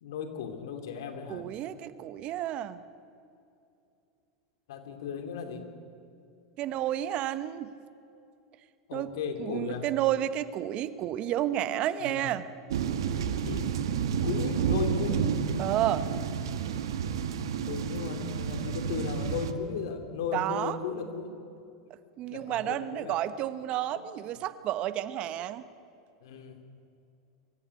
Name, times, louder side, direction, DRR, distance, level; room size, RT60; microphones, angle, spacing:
voice 1, 0.0-1.5 4.7-5.7 8.9-9.9 12.0-12.3 13.4-13.7 14.2-15.4 17.7-21.3 22.3-23.2 23.9-24.0 26.2-26.6, left 6 dB, 75° left, 6 dB, 2.7 m, -36 dB
voice 2, 1.3-2.8 6.6-7.7 8.9-9.1 9.4-12.5 15.6-16.0 20.3-20.8 22.2-25.7, right 12 dB, 45° right, 14 dB, 1.0 m, -31 dB
sound 1, 12.7-19.5, right 7 dB, 80° right, 1.3 m, -30 dB
24.0 x 15.0 x 8.2 m, 2.6 s
hypercardioid pair, 100°, 2 cm